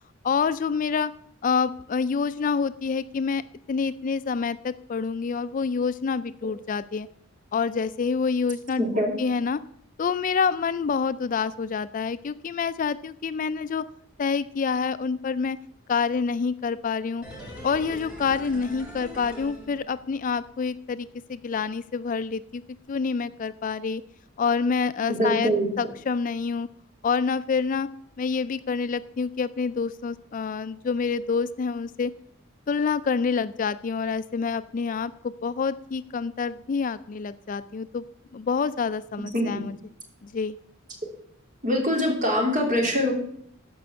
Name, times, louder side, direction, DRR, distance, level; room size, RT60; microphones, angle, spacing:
voice 1, 0.2-1.1 1.4-7.1 7.5-9.6 10.0-13.9 14.2-15.6 15.9-17.2 17.6-22.6 22.9-24.0 24.4-26.7 27.0-27.9 28.2-32.1 32.7-38.0 38.3-39.7 40.2-40.6, left 5 dB, 40° left, 14 dB, 0.3 m, -27 dB
voice 2, 8.8-9.1 25.1-25.7 39.3-39.5 41.6-43.1, equal, 40° right, 0 dB, 3.2 m, -23 dB
sound 1, 17.2-20.3 20.6-20.7, equal, 5° right, 3.2 m, -41 dB
14.0 x 5.2 x 6.8 m, 0.70 s
head